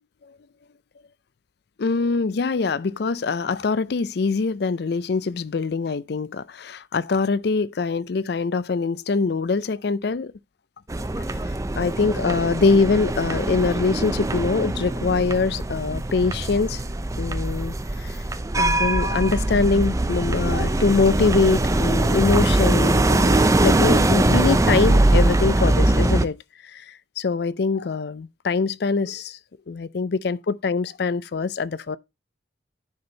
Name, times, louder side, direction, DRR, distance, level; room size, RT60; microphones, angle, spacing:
voice 1, 1.8-10.3 11.3-11.4 11.8-16.8 17.2-18.2 18.6-26.4 26.7-29.4 29.7-32.0, left 4 dB, 65° left, 0.5 m, -23 dB
sound 1, 10.9-26.3, right 2 dB, 20° right, 0.5 m, -21 dB
9.6 x 4.4 x 3.9 m
head